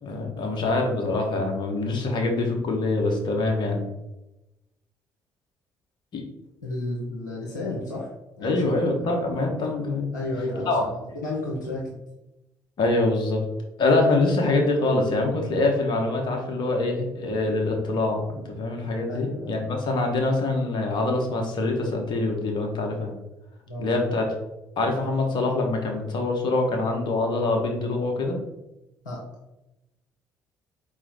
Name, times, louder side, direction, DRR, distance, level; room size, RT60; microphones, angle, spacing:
voice 1, 0.0-3.8 6.1-6.2 8.4-10.1 10.6-10.8 12.8-13.4 13.8-23.1 23.8-24.2 24.8-28.4, left 2 dB, 55° left, 1 dB, 1.1 m, -24 dB
voice 2, 6.6-8.1 8.4-9.2 10.1-12.0 19.1-19.6 23.7-24.1 29.0-29.2, left 2 dB, 90° left, -4 dB, 0.7 m, -32 dB
4.4 x 3.0 x 4.0 m, 0.95 s
figure-of-eight pair, 45°, 9 cm